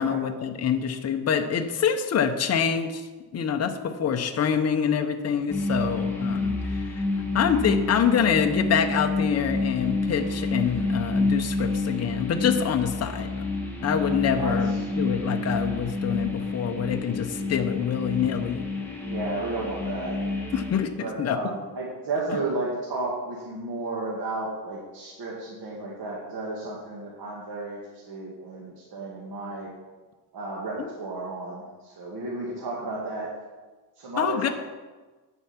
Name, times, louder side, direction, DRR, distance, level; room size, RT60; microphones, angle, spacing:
voice 1, 0.0-3.1 3.3-7.0 7.3-13.3 13.8-18.6 20.5-20.9 21.2-21.4 30.8-30.9 34.2-34.5, left 7 dB, 40° left, 6 dB, 0.7 m, -26 dB
sound 1, 5.5-20.8, left 3 dB, 5° left, 1.7 m, -28 dB
voice 2, 5.8-6.1 14.3-14.8 19.0-20.2 21.0-29.7 30.3-33.3 34.0-34.5, right 2 dB, 60° right, -4 dB, 2.0 m, -33 dB
9.2 x 8.1 x 5.8 m, 1.3 s
wide cardioid pair, 160°, 41 cm